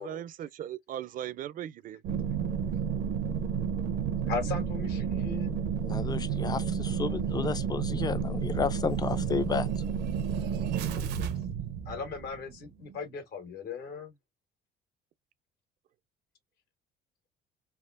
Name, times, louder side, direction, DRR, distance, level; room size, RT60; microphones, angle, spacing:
voice 1, 0.0-2.0, right 11 dB, 55° right, 0.5 m, -38 dB
sound 1, 2.0-12.6 12.9-13.0, right 7 dB, 85° right, 0.8 m, -31 dB
voice 2, 4.3-5.6 11.8-14.1, left 5 dB, 70° left, 1.5 m, -37 dB
voice 3, 5.9-9.7, left 5 dB, 25° left, 0.4 m, -32 dB
3.5 x 2.4 x 2.5 m
cardioid pair, 110°, 17 cm